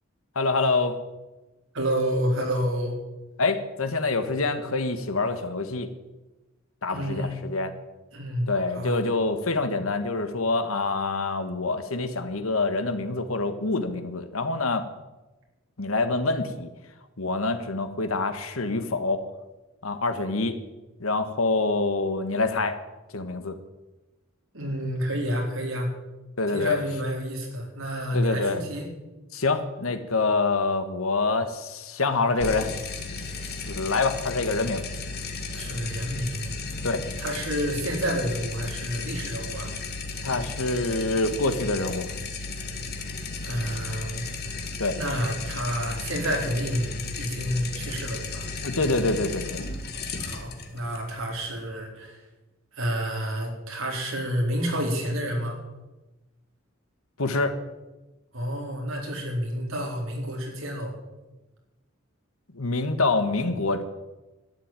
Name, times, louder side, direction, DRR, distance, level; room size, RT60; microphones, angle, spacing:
voice 1, 0.3-1.0 3.4-5.9 6.8-7.7 8.5-14.9 15.8-16.7 17.2-19.2 19.8-20.5 21.0-22.8 23.1-23.6 26.4-26.8 28.1-28.6 29.3-32.7 33.7-34.8 36.8-37.0 40.2-42.1 44.8-45.0 48.6-49.6 57.2-57.6 62.5-63.8, left 3 dB, 80° left, 9 dB, 1.5 m, -26 dB
voice 2, 1.7-3.0 6.9-7.4 8.1-9.0 24.5-25.9 26.5-28.9 35.5-36.6 37.2-39.7 43.4-44.3 44.9-46.9 47.2-48.5 50.2-52.2 52.7-55.6 58.3-60.9, equal, 70° right, 0 dB, 4.3 m, -29 dB
sound 1, 32.4-51.7, left 3 dB, 50° left, 1.9 m, -35 dB
12.5 x 10.5 x 9.0 m, 1.1 s
head